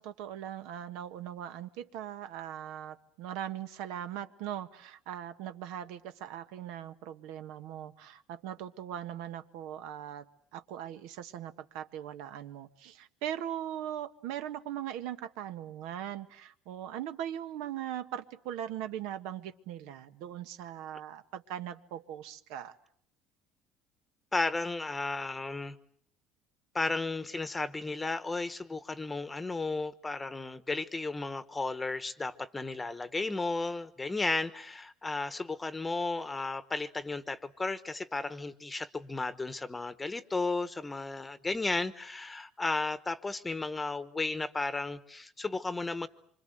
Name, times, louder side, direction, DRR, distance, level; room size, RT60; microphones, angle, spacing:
voice 1, 0.0-22.7, right 11 dB, 85° right, 9 dB, 1.7 m, -40 dB
voice 2, 24.3-25.8 26.7-46.1, left 3 dB, 10° left, 14 dB, 1.1 m, -34 dB
26.5 x 25.5 x 7.9 m, 0.64 s
cardioid pair, 160°, 0 cm